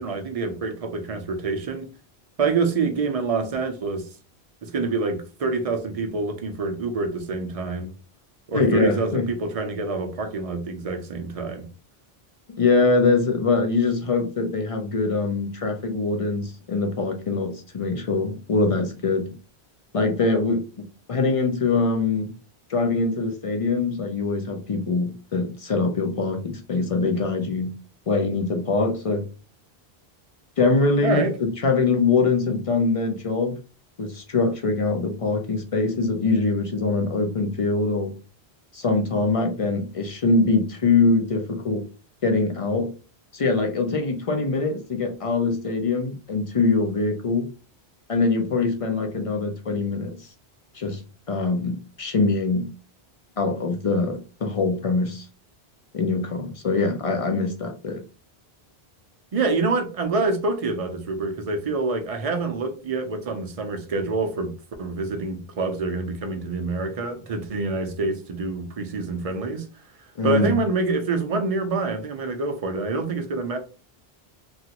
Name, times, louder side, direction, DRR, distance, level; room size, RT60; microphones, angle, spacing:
voice 1, 0.0-1.9 2.4-4.1 4.6-7.9 8.5-11.7 31.0-31.3 59.3-69.7 70.2-73.6, right 3 dB, 45° right, 0.5 m, -26 dB
voice 2, 8.5-9.3 12.5-19.3 19.9-20.7 21.1-22.3 22.7-27.8 28.1-29.3 30.6-33.6 34.0-38.1 38.7-41.9 42.2-42.9 43.3-47.5 48.1-50.3 50.7-51.0 51.3-52.7 53.4-55.3 55.9-58.0 70.2-70.5, left 3 dB, 50° left, 0.4 m, -23 dB
3.0 x 2.5 x 2.8 m
omnidirectional pair, 1.1 m